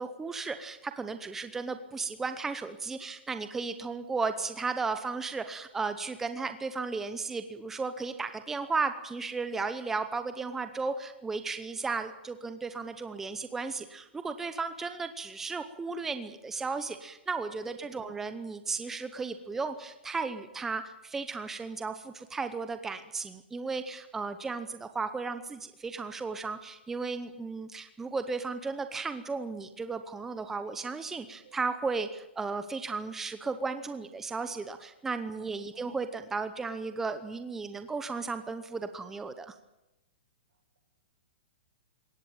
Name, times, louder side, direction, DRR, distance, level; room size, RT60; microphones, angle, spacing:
voice 1, 0.0-39.5, right 4 dB, 5° right, 10 dB, 0.8 m, -35 dB
voice 2, 17.7-18.2 31.4-31.6 35.4-36.0, right 6 dB, 85° right, 4 dB, 7.5 m, -54 dB
22.0 x 18.0 x 9.0 m, 0.90 s
hypercardioid pair, 175°, 6 cm